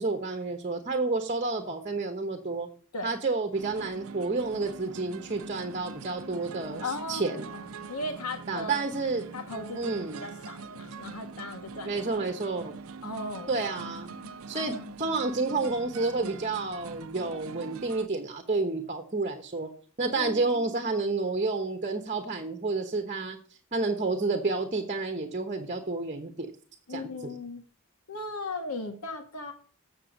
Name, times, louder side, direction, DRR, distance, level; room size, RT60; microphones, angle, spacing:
voice 1, 0.0-2.7 3.0-7.5 8.5-9.2 9.7-10.2 11.8-12.7 13.5-14.1 14.5-19.7 20.0-23.4 23.7-26.5 26.9-27.1, right 3 dB, 35° right, 5 dB, 1.1 m, -30 dB
sound 1, 3.5-18.1, right 4 dB, 65° right, 0.6 m, -43 dB
voice 2, 6.8-8.9 9.3-9.8 10.2-12.0 13.0-14.9 20.1-20.7 26.9-27.6 28.1-29.5, left 2 dB, 90° left, 6 dB, 1.5 m, -38 dB
7.6 x 7.0 x 5.1 m, 0.43 s
head